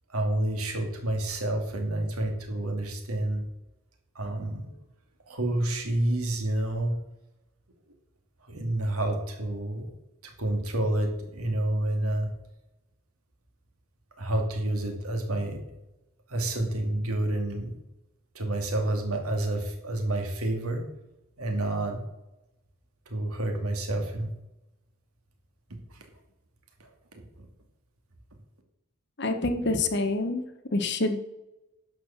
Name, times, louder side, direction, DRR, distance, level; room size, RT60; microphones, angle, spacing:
voice 1, 0.1-3.4 4.1-4.8 5.3-6.9 8.4-9.9 10.2-12.3 14.2-15.6 16.3-17.7 18.3-20.8 21.4-22.0 23.1-24.3 25.9-26.0 26.8-26.9 27.4-27.5, right 1 dB, 85° right, 3 dB, 2.4 m, -29 dB
voice 2, 29.2-30.4 30.7-31.2, left 2 dB, 50° left, 7 dB, 1.1 m, -26 dB
11.5 x 5.0 x 7.1 m, 0.93 s
head